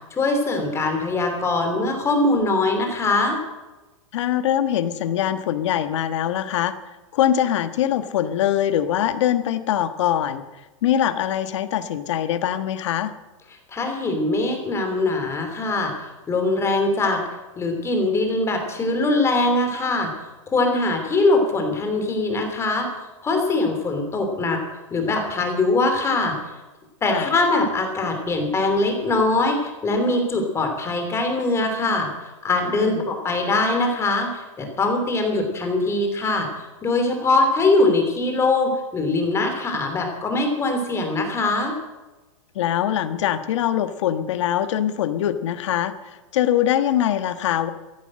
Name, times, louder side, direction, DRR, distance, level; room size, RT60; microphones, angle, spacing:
voice 1, 0.1-3.4 13.7-17.2 17.6-20.1 20.5-22.9 23.2-24.6 24.9-26.4 27.0-41.7, left 2 dB, 15° left, 4 dB, 3.1 m, -22 dB
voice 2, 4.1-6.7 7.1-13.1 27.1-27.3 32.8-33.0 42.5-47.7, left 11 dB, 65° left, 10 dB, 1.4 m, -23 dB
14.5 x 11.5 x 7.6 m, 1.1 s
hypercardioid pair, 140°, 17 cm